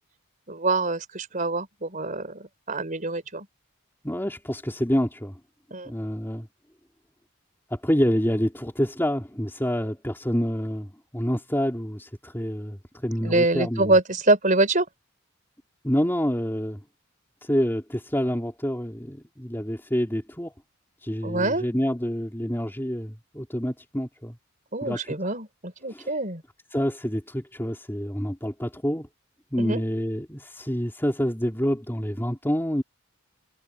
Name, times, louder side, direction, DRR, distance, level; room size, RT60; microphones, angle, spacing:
voice 1, 0.5-3.5 5.7-5.9 13.2-14.9 21.2-21.6 24.7-26.4 29.6-29.8, right 2 dB, 35° right, 5.0 m, -25 dB
voice 2, 4.0-5.4 5.8-6.5 7.7-13.9 15.8-16.8 17.4-20.5 21.0-24.3 24.8-25.0 25.9-26.1 26.7-29.1 29.5-32.8, equal, 10° left, 3.4 m, -27 dB
head